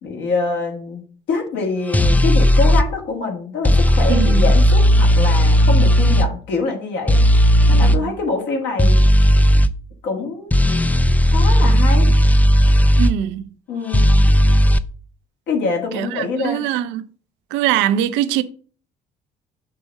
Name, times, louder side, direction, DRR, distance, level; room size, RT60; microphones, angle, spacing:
voice 1, 0.0-1.0 1.3-7.2 7.7-9.0 10.0-12.1 13.7-14.1 15.5-16.6, left 4 dB, 65° left, 1.9 m, -25 dB
sound 1, 1.9-2.8 3.6-6.3 7.1-8.0 8.8-9.7 10.5-13.1 13.9-14.8, equal, 10° left, 0.4 m, -14 dB
voice 2, 4.1-4.5 7.7-8.1 13.0-13.5 15.9-17.1 17.5-18.4, right 11 dB, 65° right, 0.5 m, -22 dB
6.7 x 3.4 x 6.0 m
figure-of-eight pair, 50°, 21 cm